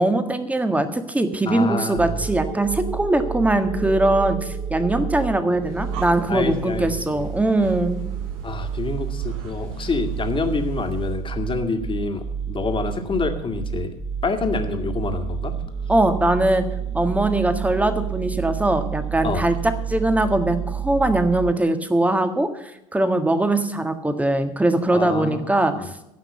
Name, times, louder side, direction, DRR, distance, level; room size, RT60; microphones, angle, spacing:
voice 1, 0.0-8.0 15.9-16.6 16.9-22.5 22.9-25.7, right 1 dB, 10° right, 8 dB, 1.6 m, -21 dB
voice 2, 1.5-2.2 6.3-7.3 8.4-13.9 14.2-15.5 19.2-19.4 24.9-25.9, left 4 dB, 30° left, 5 dB, 2.2 m, -27 dB
sound 1, 2.0-21.5, right 8 dB, 25° right, 2.2 m, -30 dB
Breathing, 5.5-11.3, right 6 dB, 75° right, 1.6 m, -41 dB
15.5 x 5.9 x 8.2 m, 0.87 s
hypercardioid pair, 70°, 18 cm